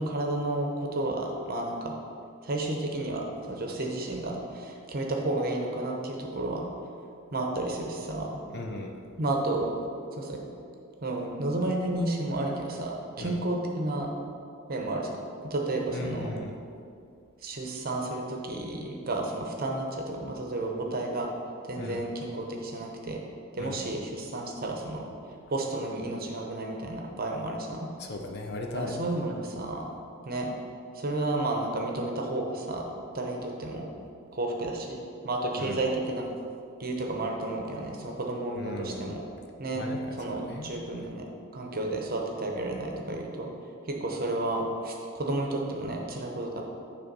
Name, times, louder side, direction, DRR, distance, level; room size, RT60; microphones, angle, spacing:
voice 1, 0.0-1.9 2.4-6.6 7.3-8.4 9.2-9.7 10.1-10.4 11.0-14.1 14.7-16.4 17.4-21.3 21.7-23.2 23.5-25.1 25.5-27.9 28.7-29.8 30.2-30.5 30.9-32.9 33.1-33.8 34.3-35.0 35.2-36.3 36.8-39.2 39.6-39.8 40.1-41.3 41.5-43.5 43.9-46.6, right 2 dB, 45° right, 1 dB, 0.9 m, -31 dB
voice 2, 8.5-8.9 13.2-13.4 15.9-16.6 21.8-22.0 23.6-23.9 28.0-28.9 35.6-35.8 38.5-39.1 39.7-40.8, left 2 dB, 50° left, 2 dB, 0.7 m, -37 dB
9.9 x 3.4 x 5.3 m, 2.5 s
head